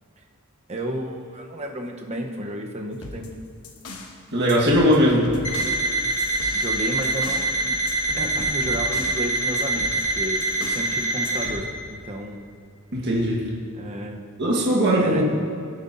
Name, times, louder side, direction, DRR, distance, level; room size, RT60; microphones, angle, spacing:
voice 1, 0.7-3.3 6.5-7.8 8.1-12.4 13.7-14.3 15.0-15.2, right 1 dB, 30° right, 2 dB, 0.9 m, -32 dB
sound 1, 2.9-4.2 4.5-7.5 7.9-9.2 9.6-10.9 11.2-11.7, left 2 dB, 85° left, 1.1 m, -39 dB
voice 2, 4.3-5.3 12.9-13.4 14.4-15.2, equal, 50° right, -4 dB, 1.5 m, -19 dB
Alarm, 5.4-11.5, right 2 dB, 65° left, 2.2 m, -25 dB
17.5 x 7.8 x 2.7 m, 2.4 s
head